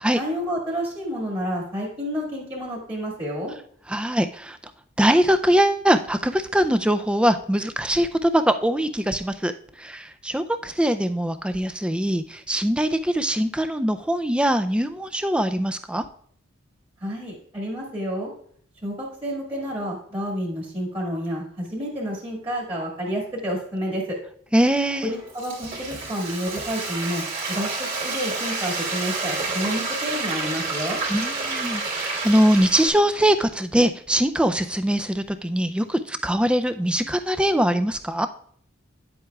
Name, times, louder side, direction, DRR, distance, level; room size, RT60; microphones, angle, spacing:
voice 1, 0.1-3.5 17.0-18.3 18.8-24.2 25.0-31.0, equal, 25° right, -2 dB, 1.8 m, -29 dB
voice 2, 3.9-4.6 5.0-9.5 9.8-16.1 24.5-25.1 31.1-38.3, equal, 5° right, 9 dB, 0.3 m, -22 dB
Frying (food), 25.0-32.9, right 3 dB, 40° right, 2.5 m, -29 dB
9.7 x 7.8 x 2.3 m, 0.62 s
head